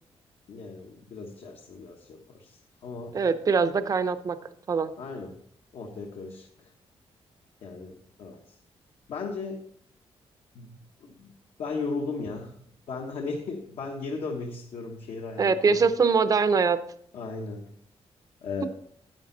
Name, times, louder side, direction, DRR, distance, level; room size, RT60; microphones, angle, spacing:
voice 1, 0.5-3.2 5.0-5.4 5.7-6.7 7.6-8.6 9.1-9.7 10.5-11.3 11.6-12.6 12.9-15.8 17.1-17.7 18.4-18.7, left 4 dB, 70° left, 1 dB, 1.2 m, -36 dB
voice 2, 3.1-4.4 4.7-4.9 15.4-16.8, right 5 dB, 35° right, 12 dB, 0.6 m, -23 dB
10.5 x 9.2 x 4.0 m, 0.64 s
wide cardioid pair, 150°, 11 cm